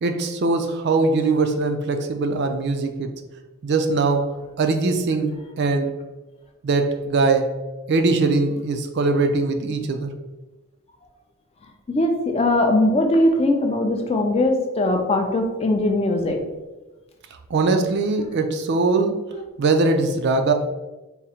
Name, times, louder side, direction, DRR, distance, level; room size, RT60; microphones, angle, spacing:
voice 1, 0.0-3.1 3.6-5.9 6.6-7.6 7.9-10.1 17.5-19.3 19.6-20.5, right 3 dB, 50° right, 6 dB, 0.3 m, -21 dB
voice 2, 11.9-16.4, left 1 dB, 25° left, 3 dB, 0.3 m, -20 dB
3.6 x 2.0 x 4.2 m, 1.1 s
head